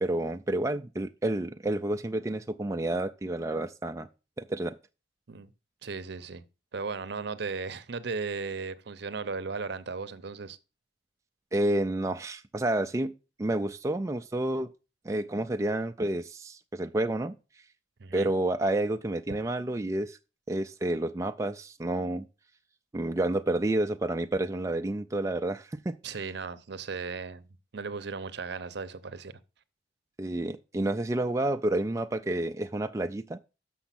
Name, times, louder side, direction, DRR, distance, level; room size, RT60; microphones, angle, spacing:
voice 1, 0.0-4.1 4.4-4.8 11.5-13.1 13.4-14.7 15.0-17.4 18.1-20.2 20.5-22.2 22.9-26.0 30.2-33.4, right 1 dB, 15° right, 0.4 m, -29 dB
voice 2, 5.8-6.4 6.7-10.6 18.0-18.3 26.0-27.4 27.7-29.3, right 4 dB, 65° right, 0.7 m, -36 dB
7.0 x 6.3 x 5.8 m
head